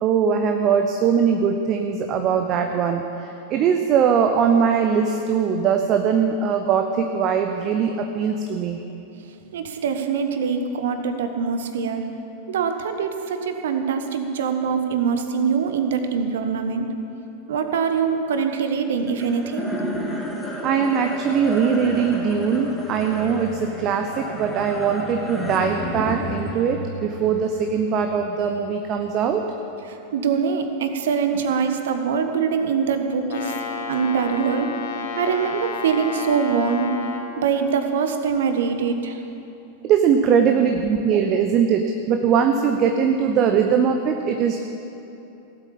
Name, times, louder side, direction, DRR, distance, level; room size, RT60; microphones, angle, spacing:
voice 1, 0.0-8.8 20.6-29.5 39.8-44.6, right 7 dB, 35° right, 5 dB, 0.8 m, -21 dB
voice 2, 9.5-12.0 12.5-16.9 17.5-19.7 30.1-33.5 33.9-34.7 35.2-37.0 37.4-39.2, right 6 dB, 60° right, 7 dB, 1.2 m, -23 dB
sound 1, 19.1-29.6, equal, ahead, 3.0 m, -32 dB
Brass instrument, 33.3-37.3, left 4 dB, 50° left, 1.4 m, -31 dB
17.5 x 8.3 x 7.6 m, 2.9 s
figure-of-eight pair, 90°, 0 cm